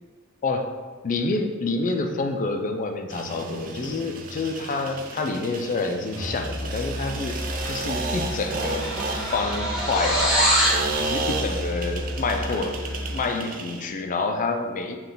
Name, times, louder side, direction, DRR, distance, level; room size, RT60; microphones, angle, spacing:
voice 1, 0.4-0.7 1.0-7.4 7.6-10.5 11.0-12.8 13.1-15.0, left 3 dB, 35° left, 5 dB, 0.3 m, -28 dB
sound 1, 3.1-13.9, right 3 dB, 40° right, 0.4 m, -33 dB
Musical instrument, 6.1-13.3, equal, 15° left, 0.8 m, -33 dB
sound 2, 8.4-10.9, equal, ahead, 1.0 m, -24 dB
5.4 x 2.3 x 3.8 m, 1.4 s
head